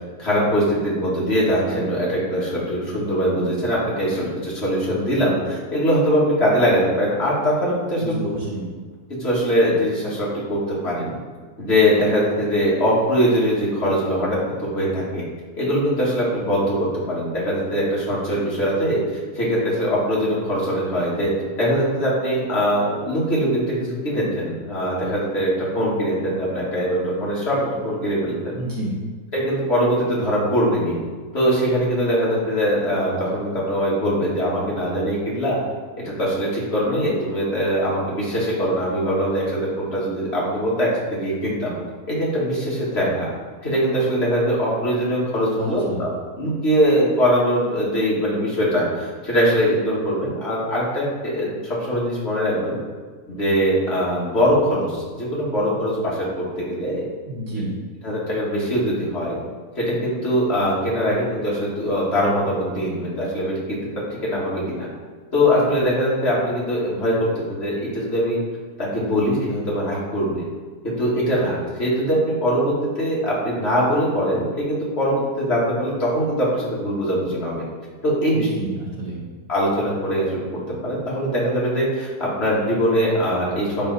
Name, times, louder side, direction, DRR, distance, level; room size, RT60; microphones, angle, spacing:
voice 1, 0.2-8.2 9.2-11.1 11.6-15.2 15.6-19.0 19.4-21.3 21.6-25.5 25.7-28.5 29.3-31.0 31.3-35.6 36.0-41.7 42.1-43.3 43.6-46.1 46.4-52.8 53.3-57.0 58.0-59.4 59.8-63.8 64.1-64.9 65.3-68.4 68.8-70.4 70.8-77.6 78.0-78.5 79.5-80.4 80.8-83.9, equal, 40° left, -7 dB, 2.2 m, -22 dB
voice 2, 8.0-8.7 28.6-28.9 45.6-46.0 57.3-57.7 78.3-79.2, right 1 dB, 65° right, -5 dB, 2.0 m, -29 dB
10.0 x 3.6 x 4.1 m, 1.5 s
omnidirectional pair, 1.6 m